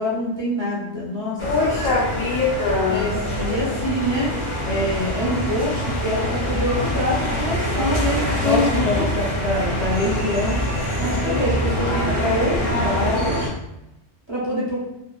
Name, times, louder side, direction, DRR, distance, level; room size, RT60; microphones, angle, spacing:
voice 1, 0.0-1.4 2.9-4.4 4.6-10.6 11.0-13.5 14.3-14.8, equal, 25° right, -7 dB, 1.0 m, -25 dB
voice 2, 1.4-3.0 8.4-9.0 11.2-11.4, left 4 dB, 90° left, -7 dB, 1.1 m, -22 dB
sound 1, 1.4-13.5, equal, 30° left, 0.6 m, -25 dB
3.0 x 3.0 x 2.4 m, 0.86 s
omnidirectional pair, 1.3 m